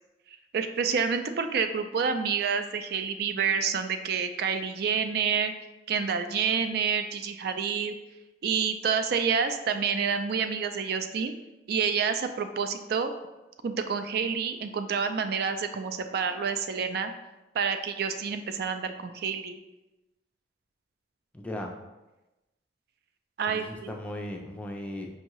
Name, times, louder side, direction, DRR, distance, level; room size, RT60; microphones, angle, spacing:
voice 1, 0.5-5.5 5.9-7.9 8.4-11.3 11.7-13.1 13.6-17.1 17.5-19.6 23.4-23.9, right 6 dB, 60° right, 8 dB, 0.3 m, -28 dB
voice 2, 21.3-21.7 23.5-25.1, left 1 dB, 5° left, 1 dB, 0.4 m, -37 dB
5.3 x 2.7 x 3.0 m, 1.0 s
head